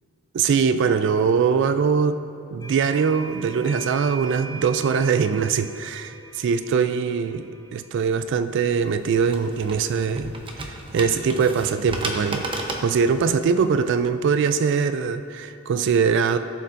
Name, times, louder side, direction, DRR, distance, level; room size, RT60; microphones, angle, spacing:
voice 1, 0.3-2.2 2.5-10.3 10.6-12.5 12.8-16.4, right 6 dB, 60° right, 10 dB, 0.3 m, -22 dB
sound 1, 2.6-7.9, right 3 dB, 15° left, 0.4 m, -41 dB
sound 2, 8.7-14.1, right 2 dB, 25° right, 0.8 m, -34 dB
16.0 x 7.0 x 2.6 m, 2.7 s
head